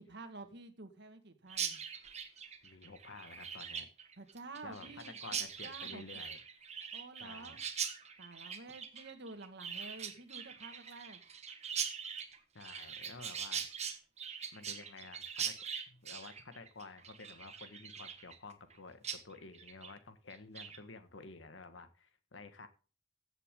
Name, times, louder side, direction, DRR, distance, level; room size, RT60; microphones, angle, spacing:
voice 1, 0.0-1.8 4.2-6.0 6.9-7.6 8.2-11.2, right 3 dB, 65° right, 1.8 m, -50 dB
Chirp tweet, 1.5-18.8 19.0-19.2 19.5-19.9 20.3-20.8, right 7 dB, 35° right, 1.5 m, -42 dB
voice 2, 2.6-3.9 4.6-6.4 7.2-7.6 12.5-13.7 14.5-15.5 15.9-22.7, left 3 dB, 85° left, 1.5 m, -51 dB
15.0 x 8.1 x 3.7 m
head